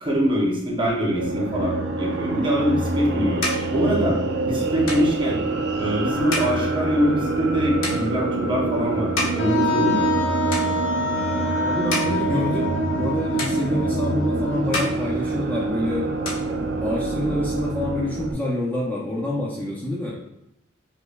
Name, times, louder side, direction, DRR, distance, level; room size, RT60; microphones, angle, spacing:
voice 1, 0.0-3.5 3.7-5.4 5.8-10.1, equal, 25° right, -2 dB, 0.7 m, -23 dB
sound 1, 1.1-18.3, right 3 dB, 55° right, 0.4 m, -26 dB
sound 2, 2.5-10.2 10.5-11.2 11.6-13.1 13.4-14.3 14.6-15.8 16.0-17.2, left 1 dB, 90° left, 1.0 m, -33 dB
Wind instrument woodwind instrument, 9.4-15.1, left 1 dB, 65° left, 0.5 m, -26 dB
voice 2, 11.3-16.1 16.8-20.2, left 1 dB, 10° left, -5 dB, 0.5 m, -27 dB
5.2 x 2.1 x 2.2 m, 0.86 s
head